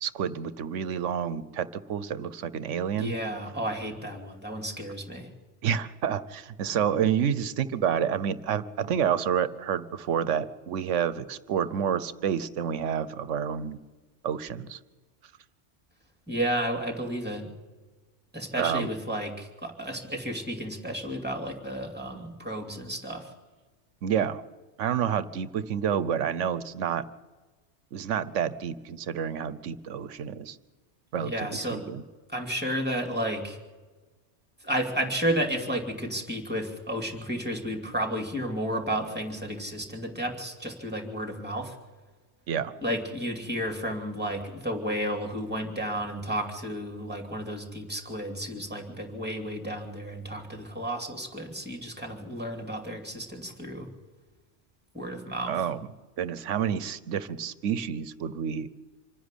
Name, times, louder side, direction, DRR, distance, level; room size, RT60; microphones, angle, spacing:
voice 1, 0.0-3.1 5.6-13.8 14.2-14.8 18.6-18.9 24.0-24.4 24.8-27.0 27.9-30.6 31.1-32.0 42.5-42.7 55.5-55.8 56.2-58.7, right 8 dB, 80° right, 15 dB, 1.1 m, -29 dB
voice 2, 3.0-5.3 16.3-17.5 18.3-23.3 31.1-31.9 32.3-33.6 34.6-41.7 42.8-53.9 54.9-55.6, equal, 10° right, 3 dB, 2.6 m, -32 dB
26.0 x 10.5 x 10.0 m, 1.3 s
omnidirectional pair, 1.2 m